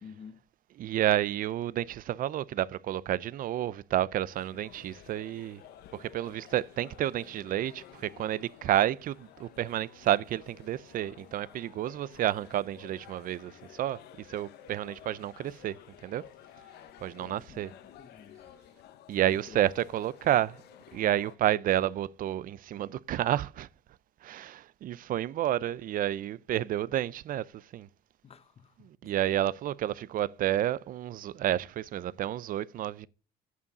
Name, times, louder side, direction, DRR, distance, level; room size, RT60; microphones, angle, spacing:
voice 1, 0.0-0.4 17.2-18.4 19.3-19.6 28.2-29.1, left 6 dB, 35° left, 0.9 m, -51 dB
voice 2, 0.8-5.6 5.9-15.8 16.0-16.2 17.0-17.7 19.1-20.6 20.9-23.7 24.2-27.9 29.0-33.1, right 12 dB, 55° right, 0.5 m, -30 dB
sound 1, 4.3-21.4, left 11 dB, 75° left, 1.0 m, -53 dB
8.4 x 7.3 x 5.3 m
cardioid pair, 110°, 17 cm